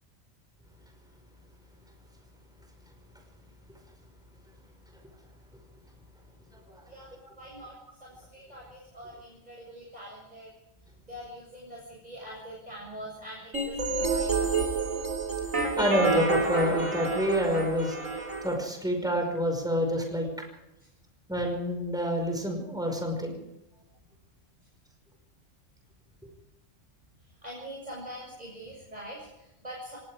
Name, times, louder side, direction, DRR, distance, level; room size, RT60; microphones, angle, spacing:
voice 1, 6.9-10.5 11.1-14.5 27.4-30.0, equal, 30° right, -4 dB, 7.3 m, -44 dB
sound 1, 13.5-18.5, right 3 dB, 90° right, 4.0 m, -29 dB
voice 2, 15.8-18.0 18.4-20.3 21.3-23.4, equal, 5° right, 2 dB, 5.3 m, -28 dB
28.0 x 19.0 x 5.0 m, 0.87 s
omnidirectional pair, 1.3 m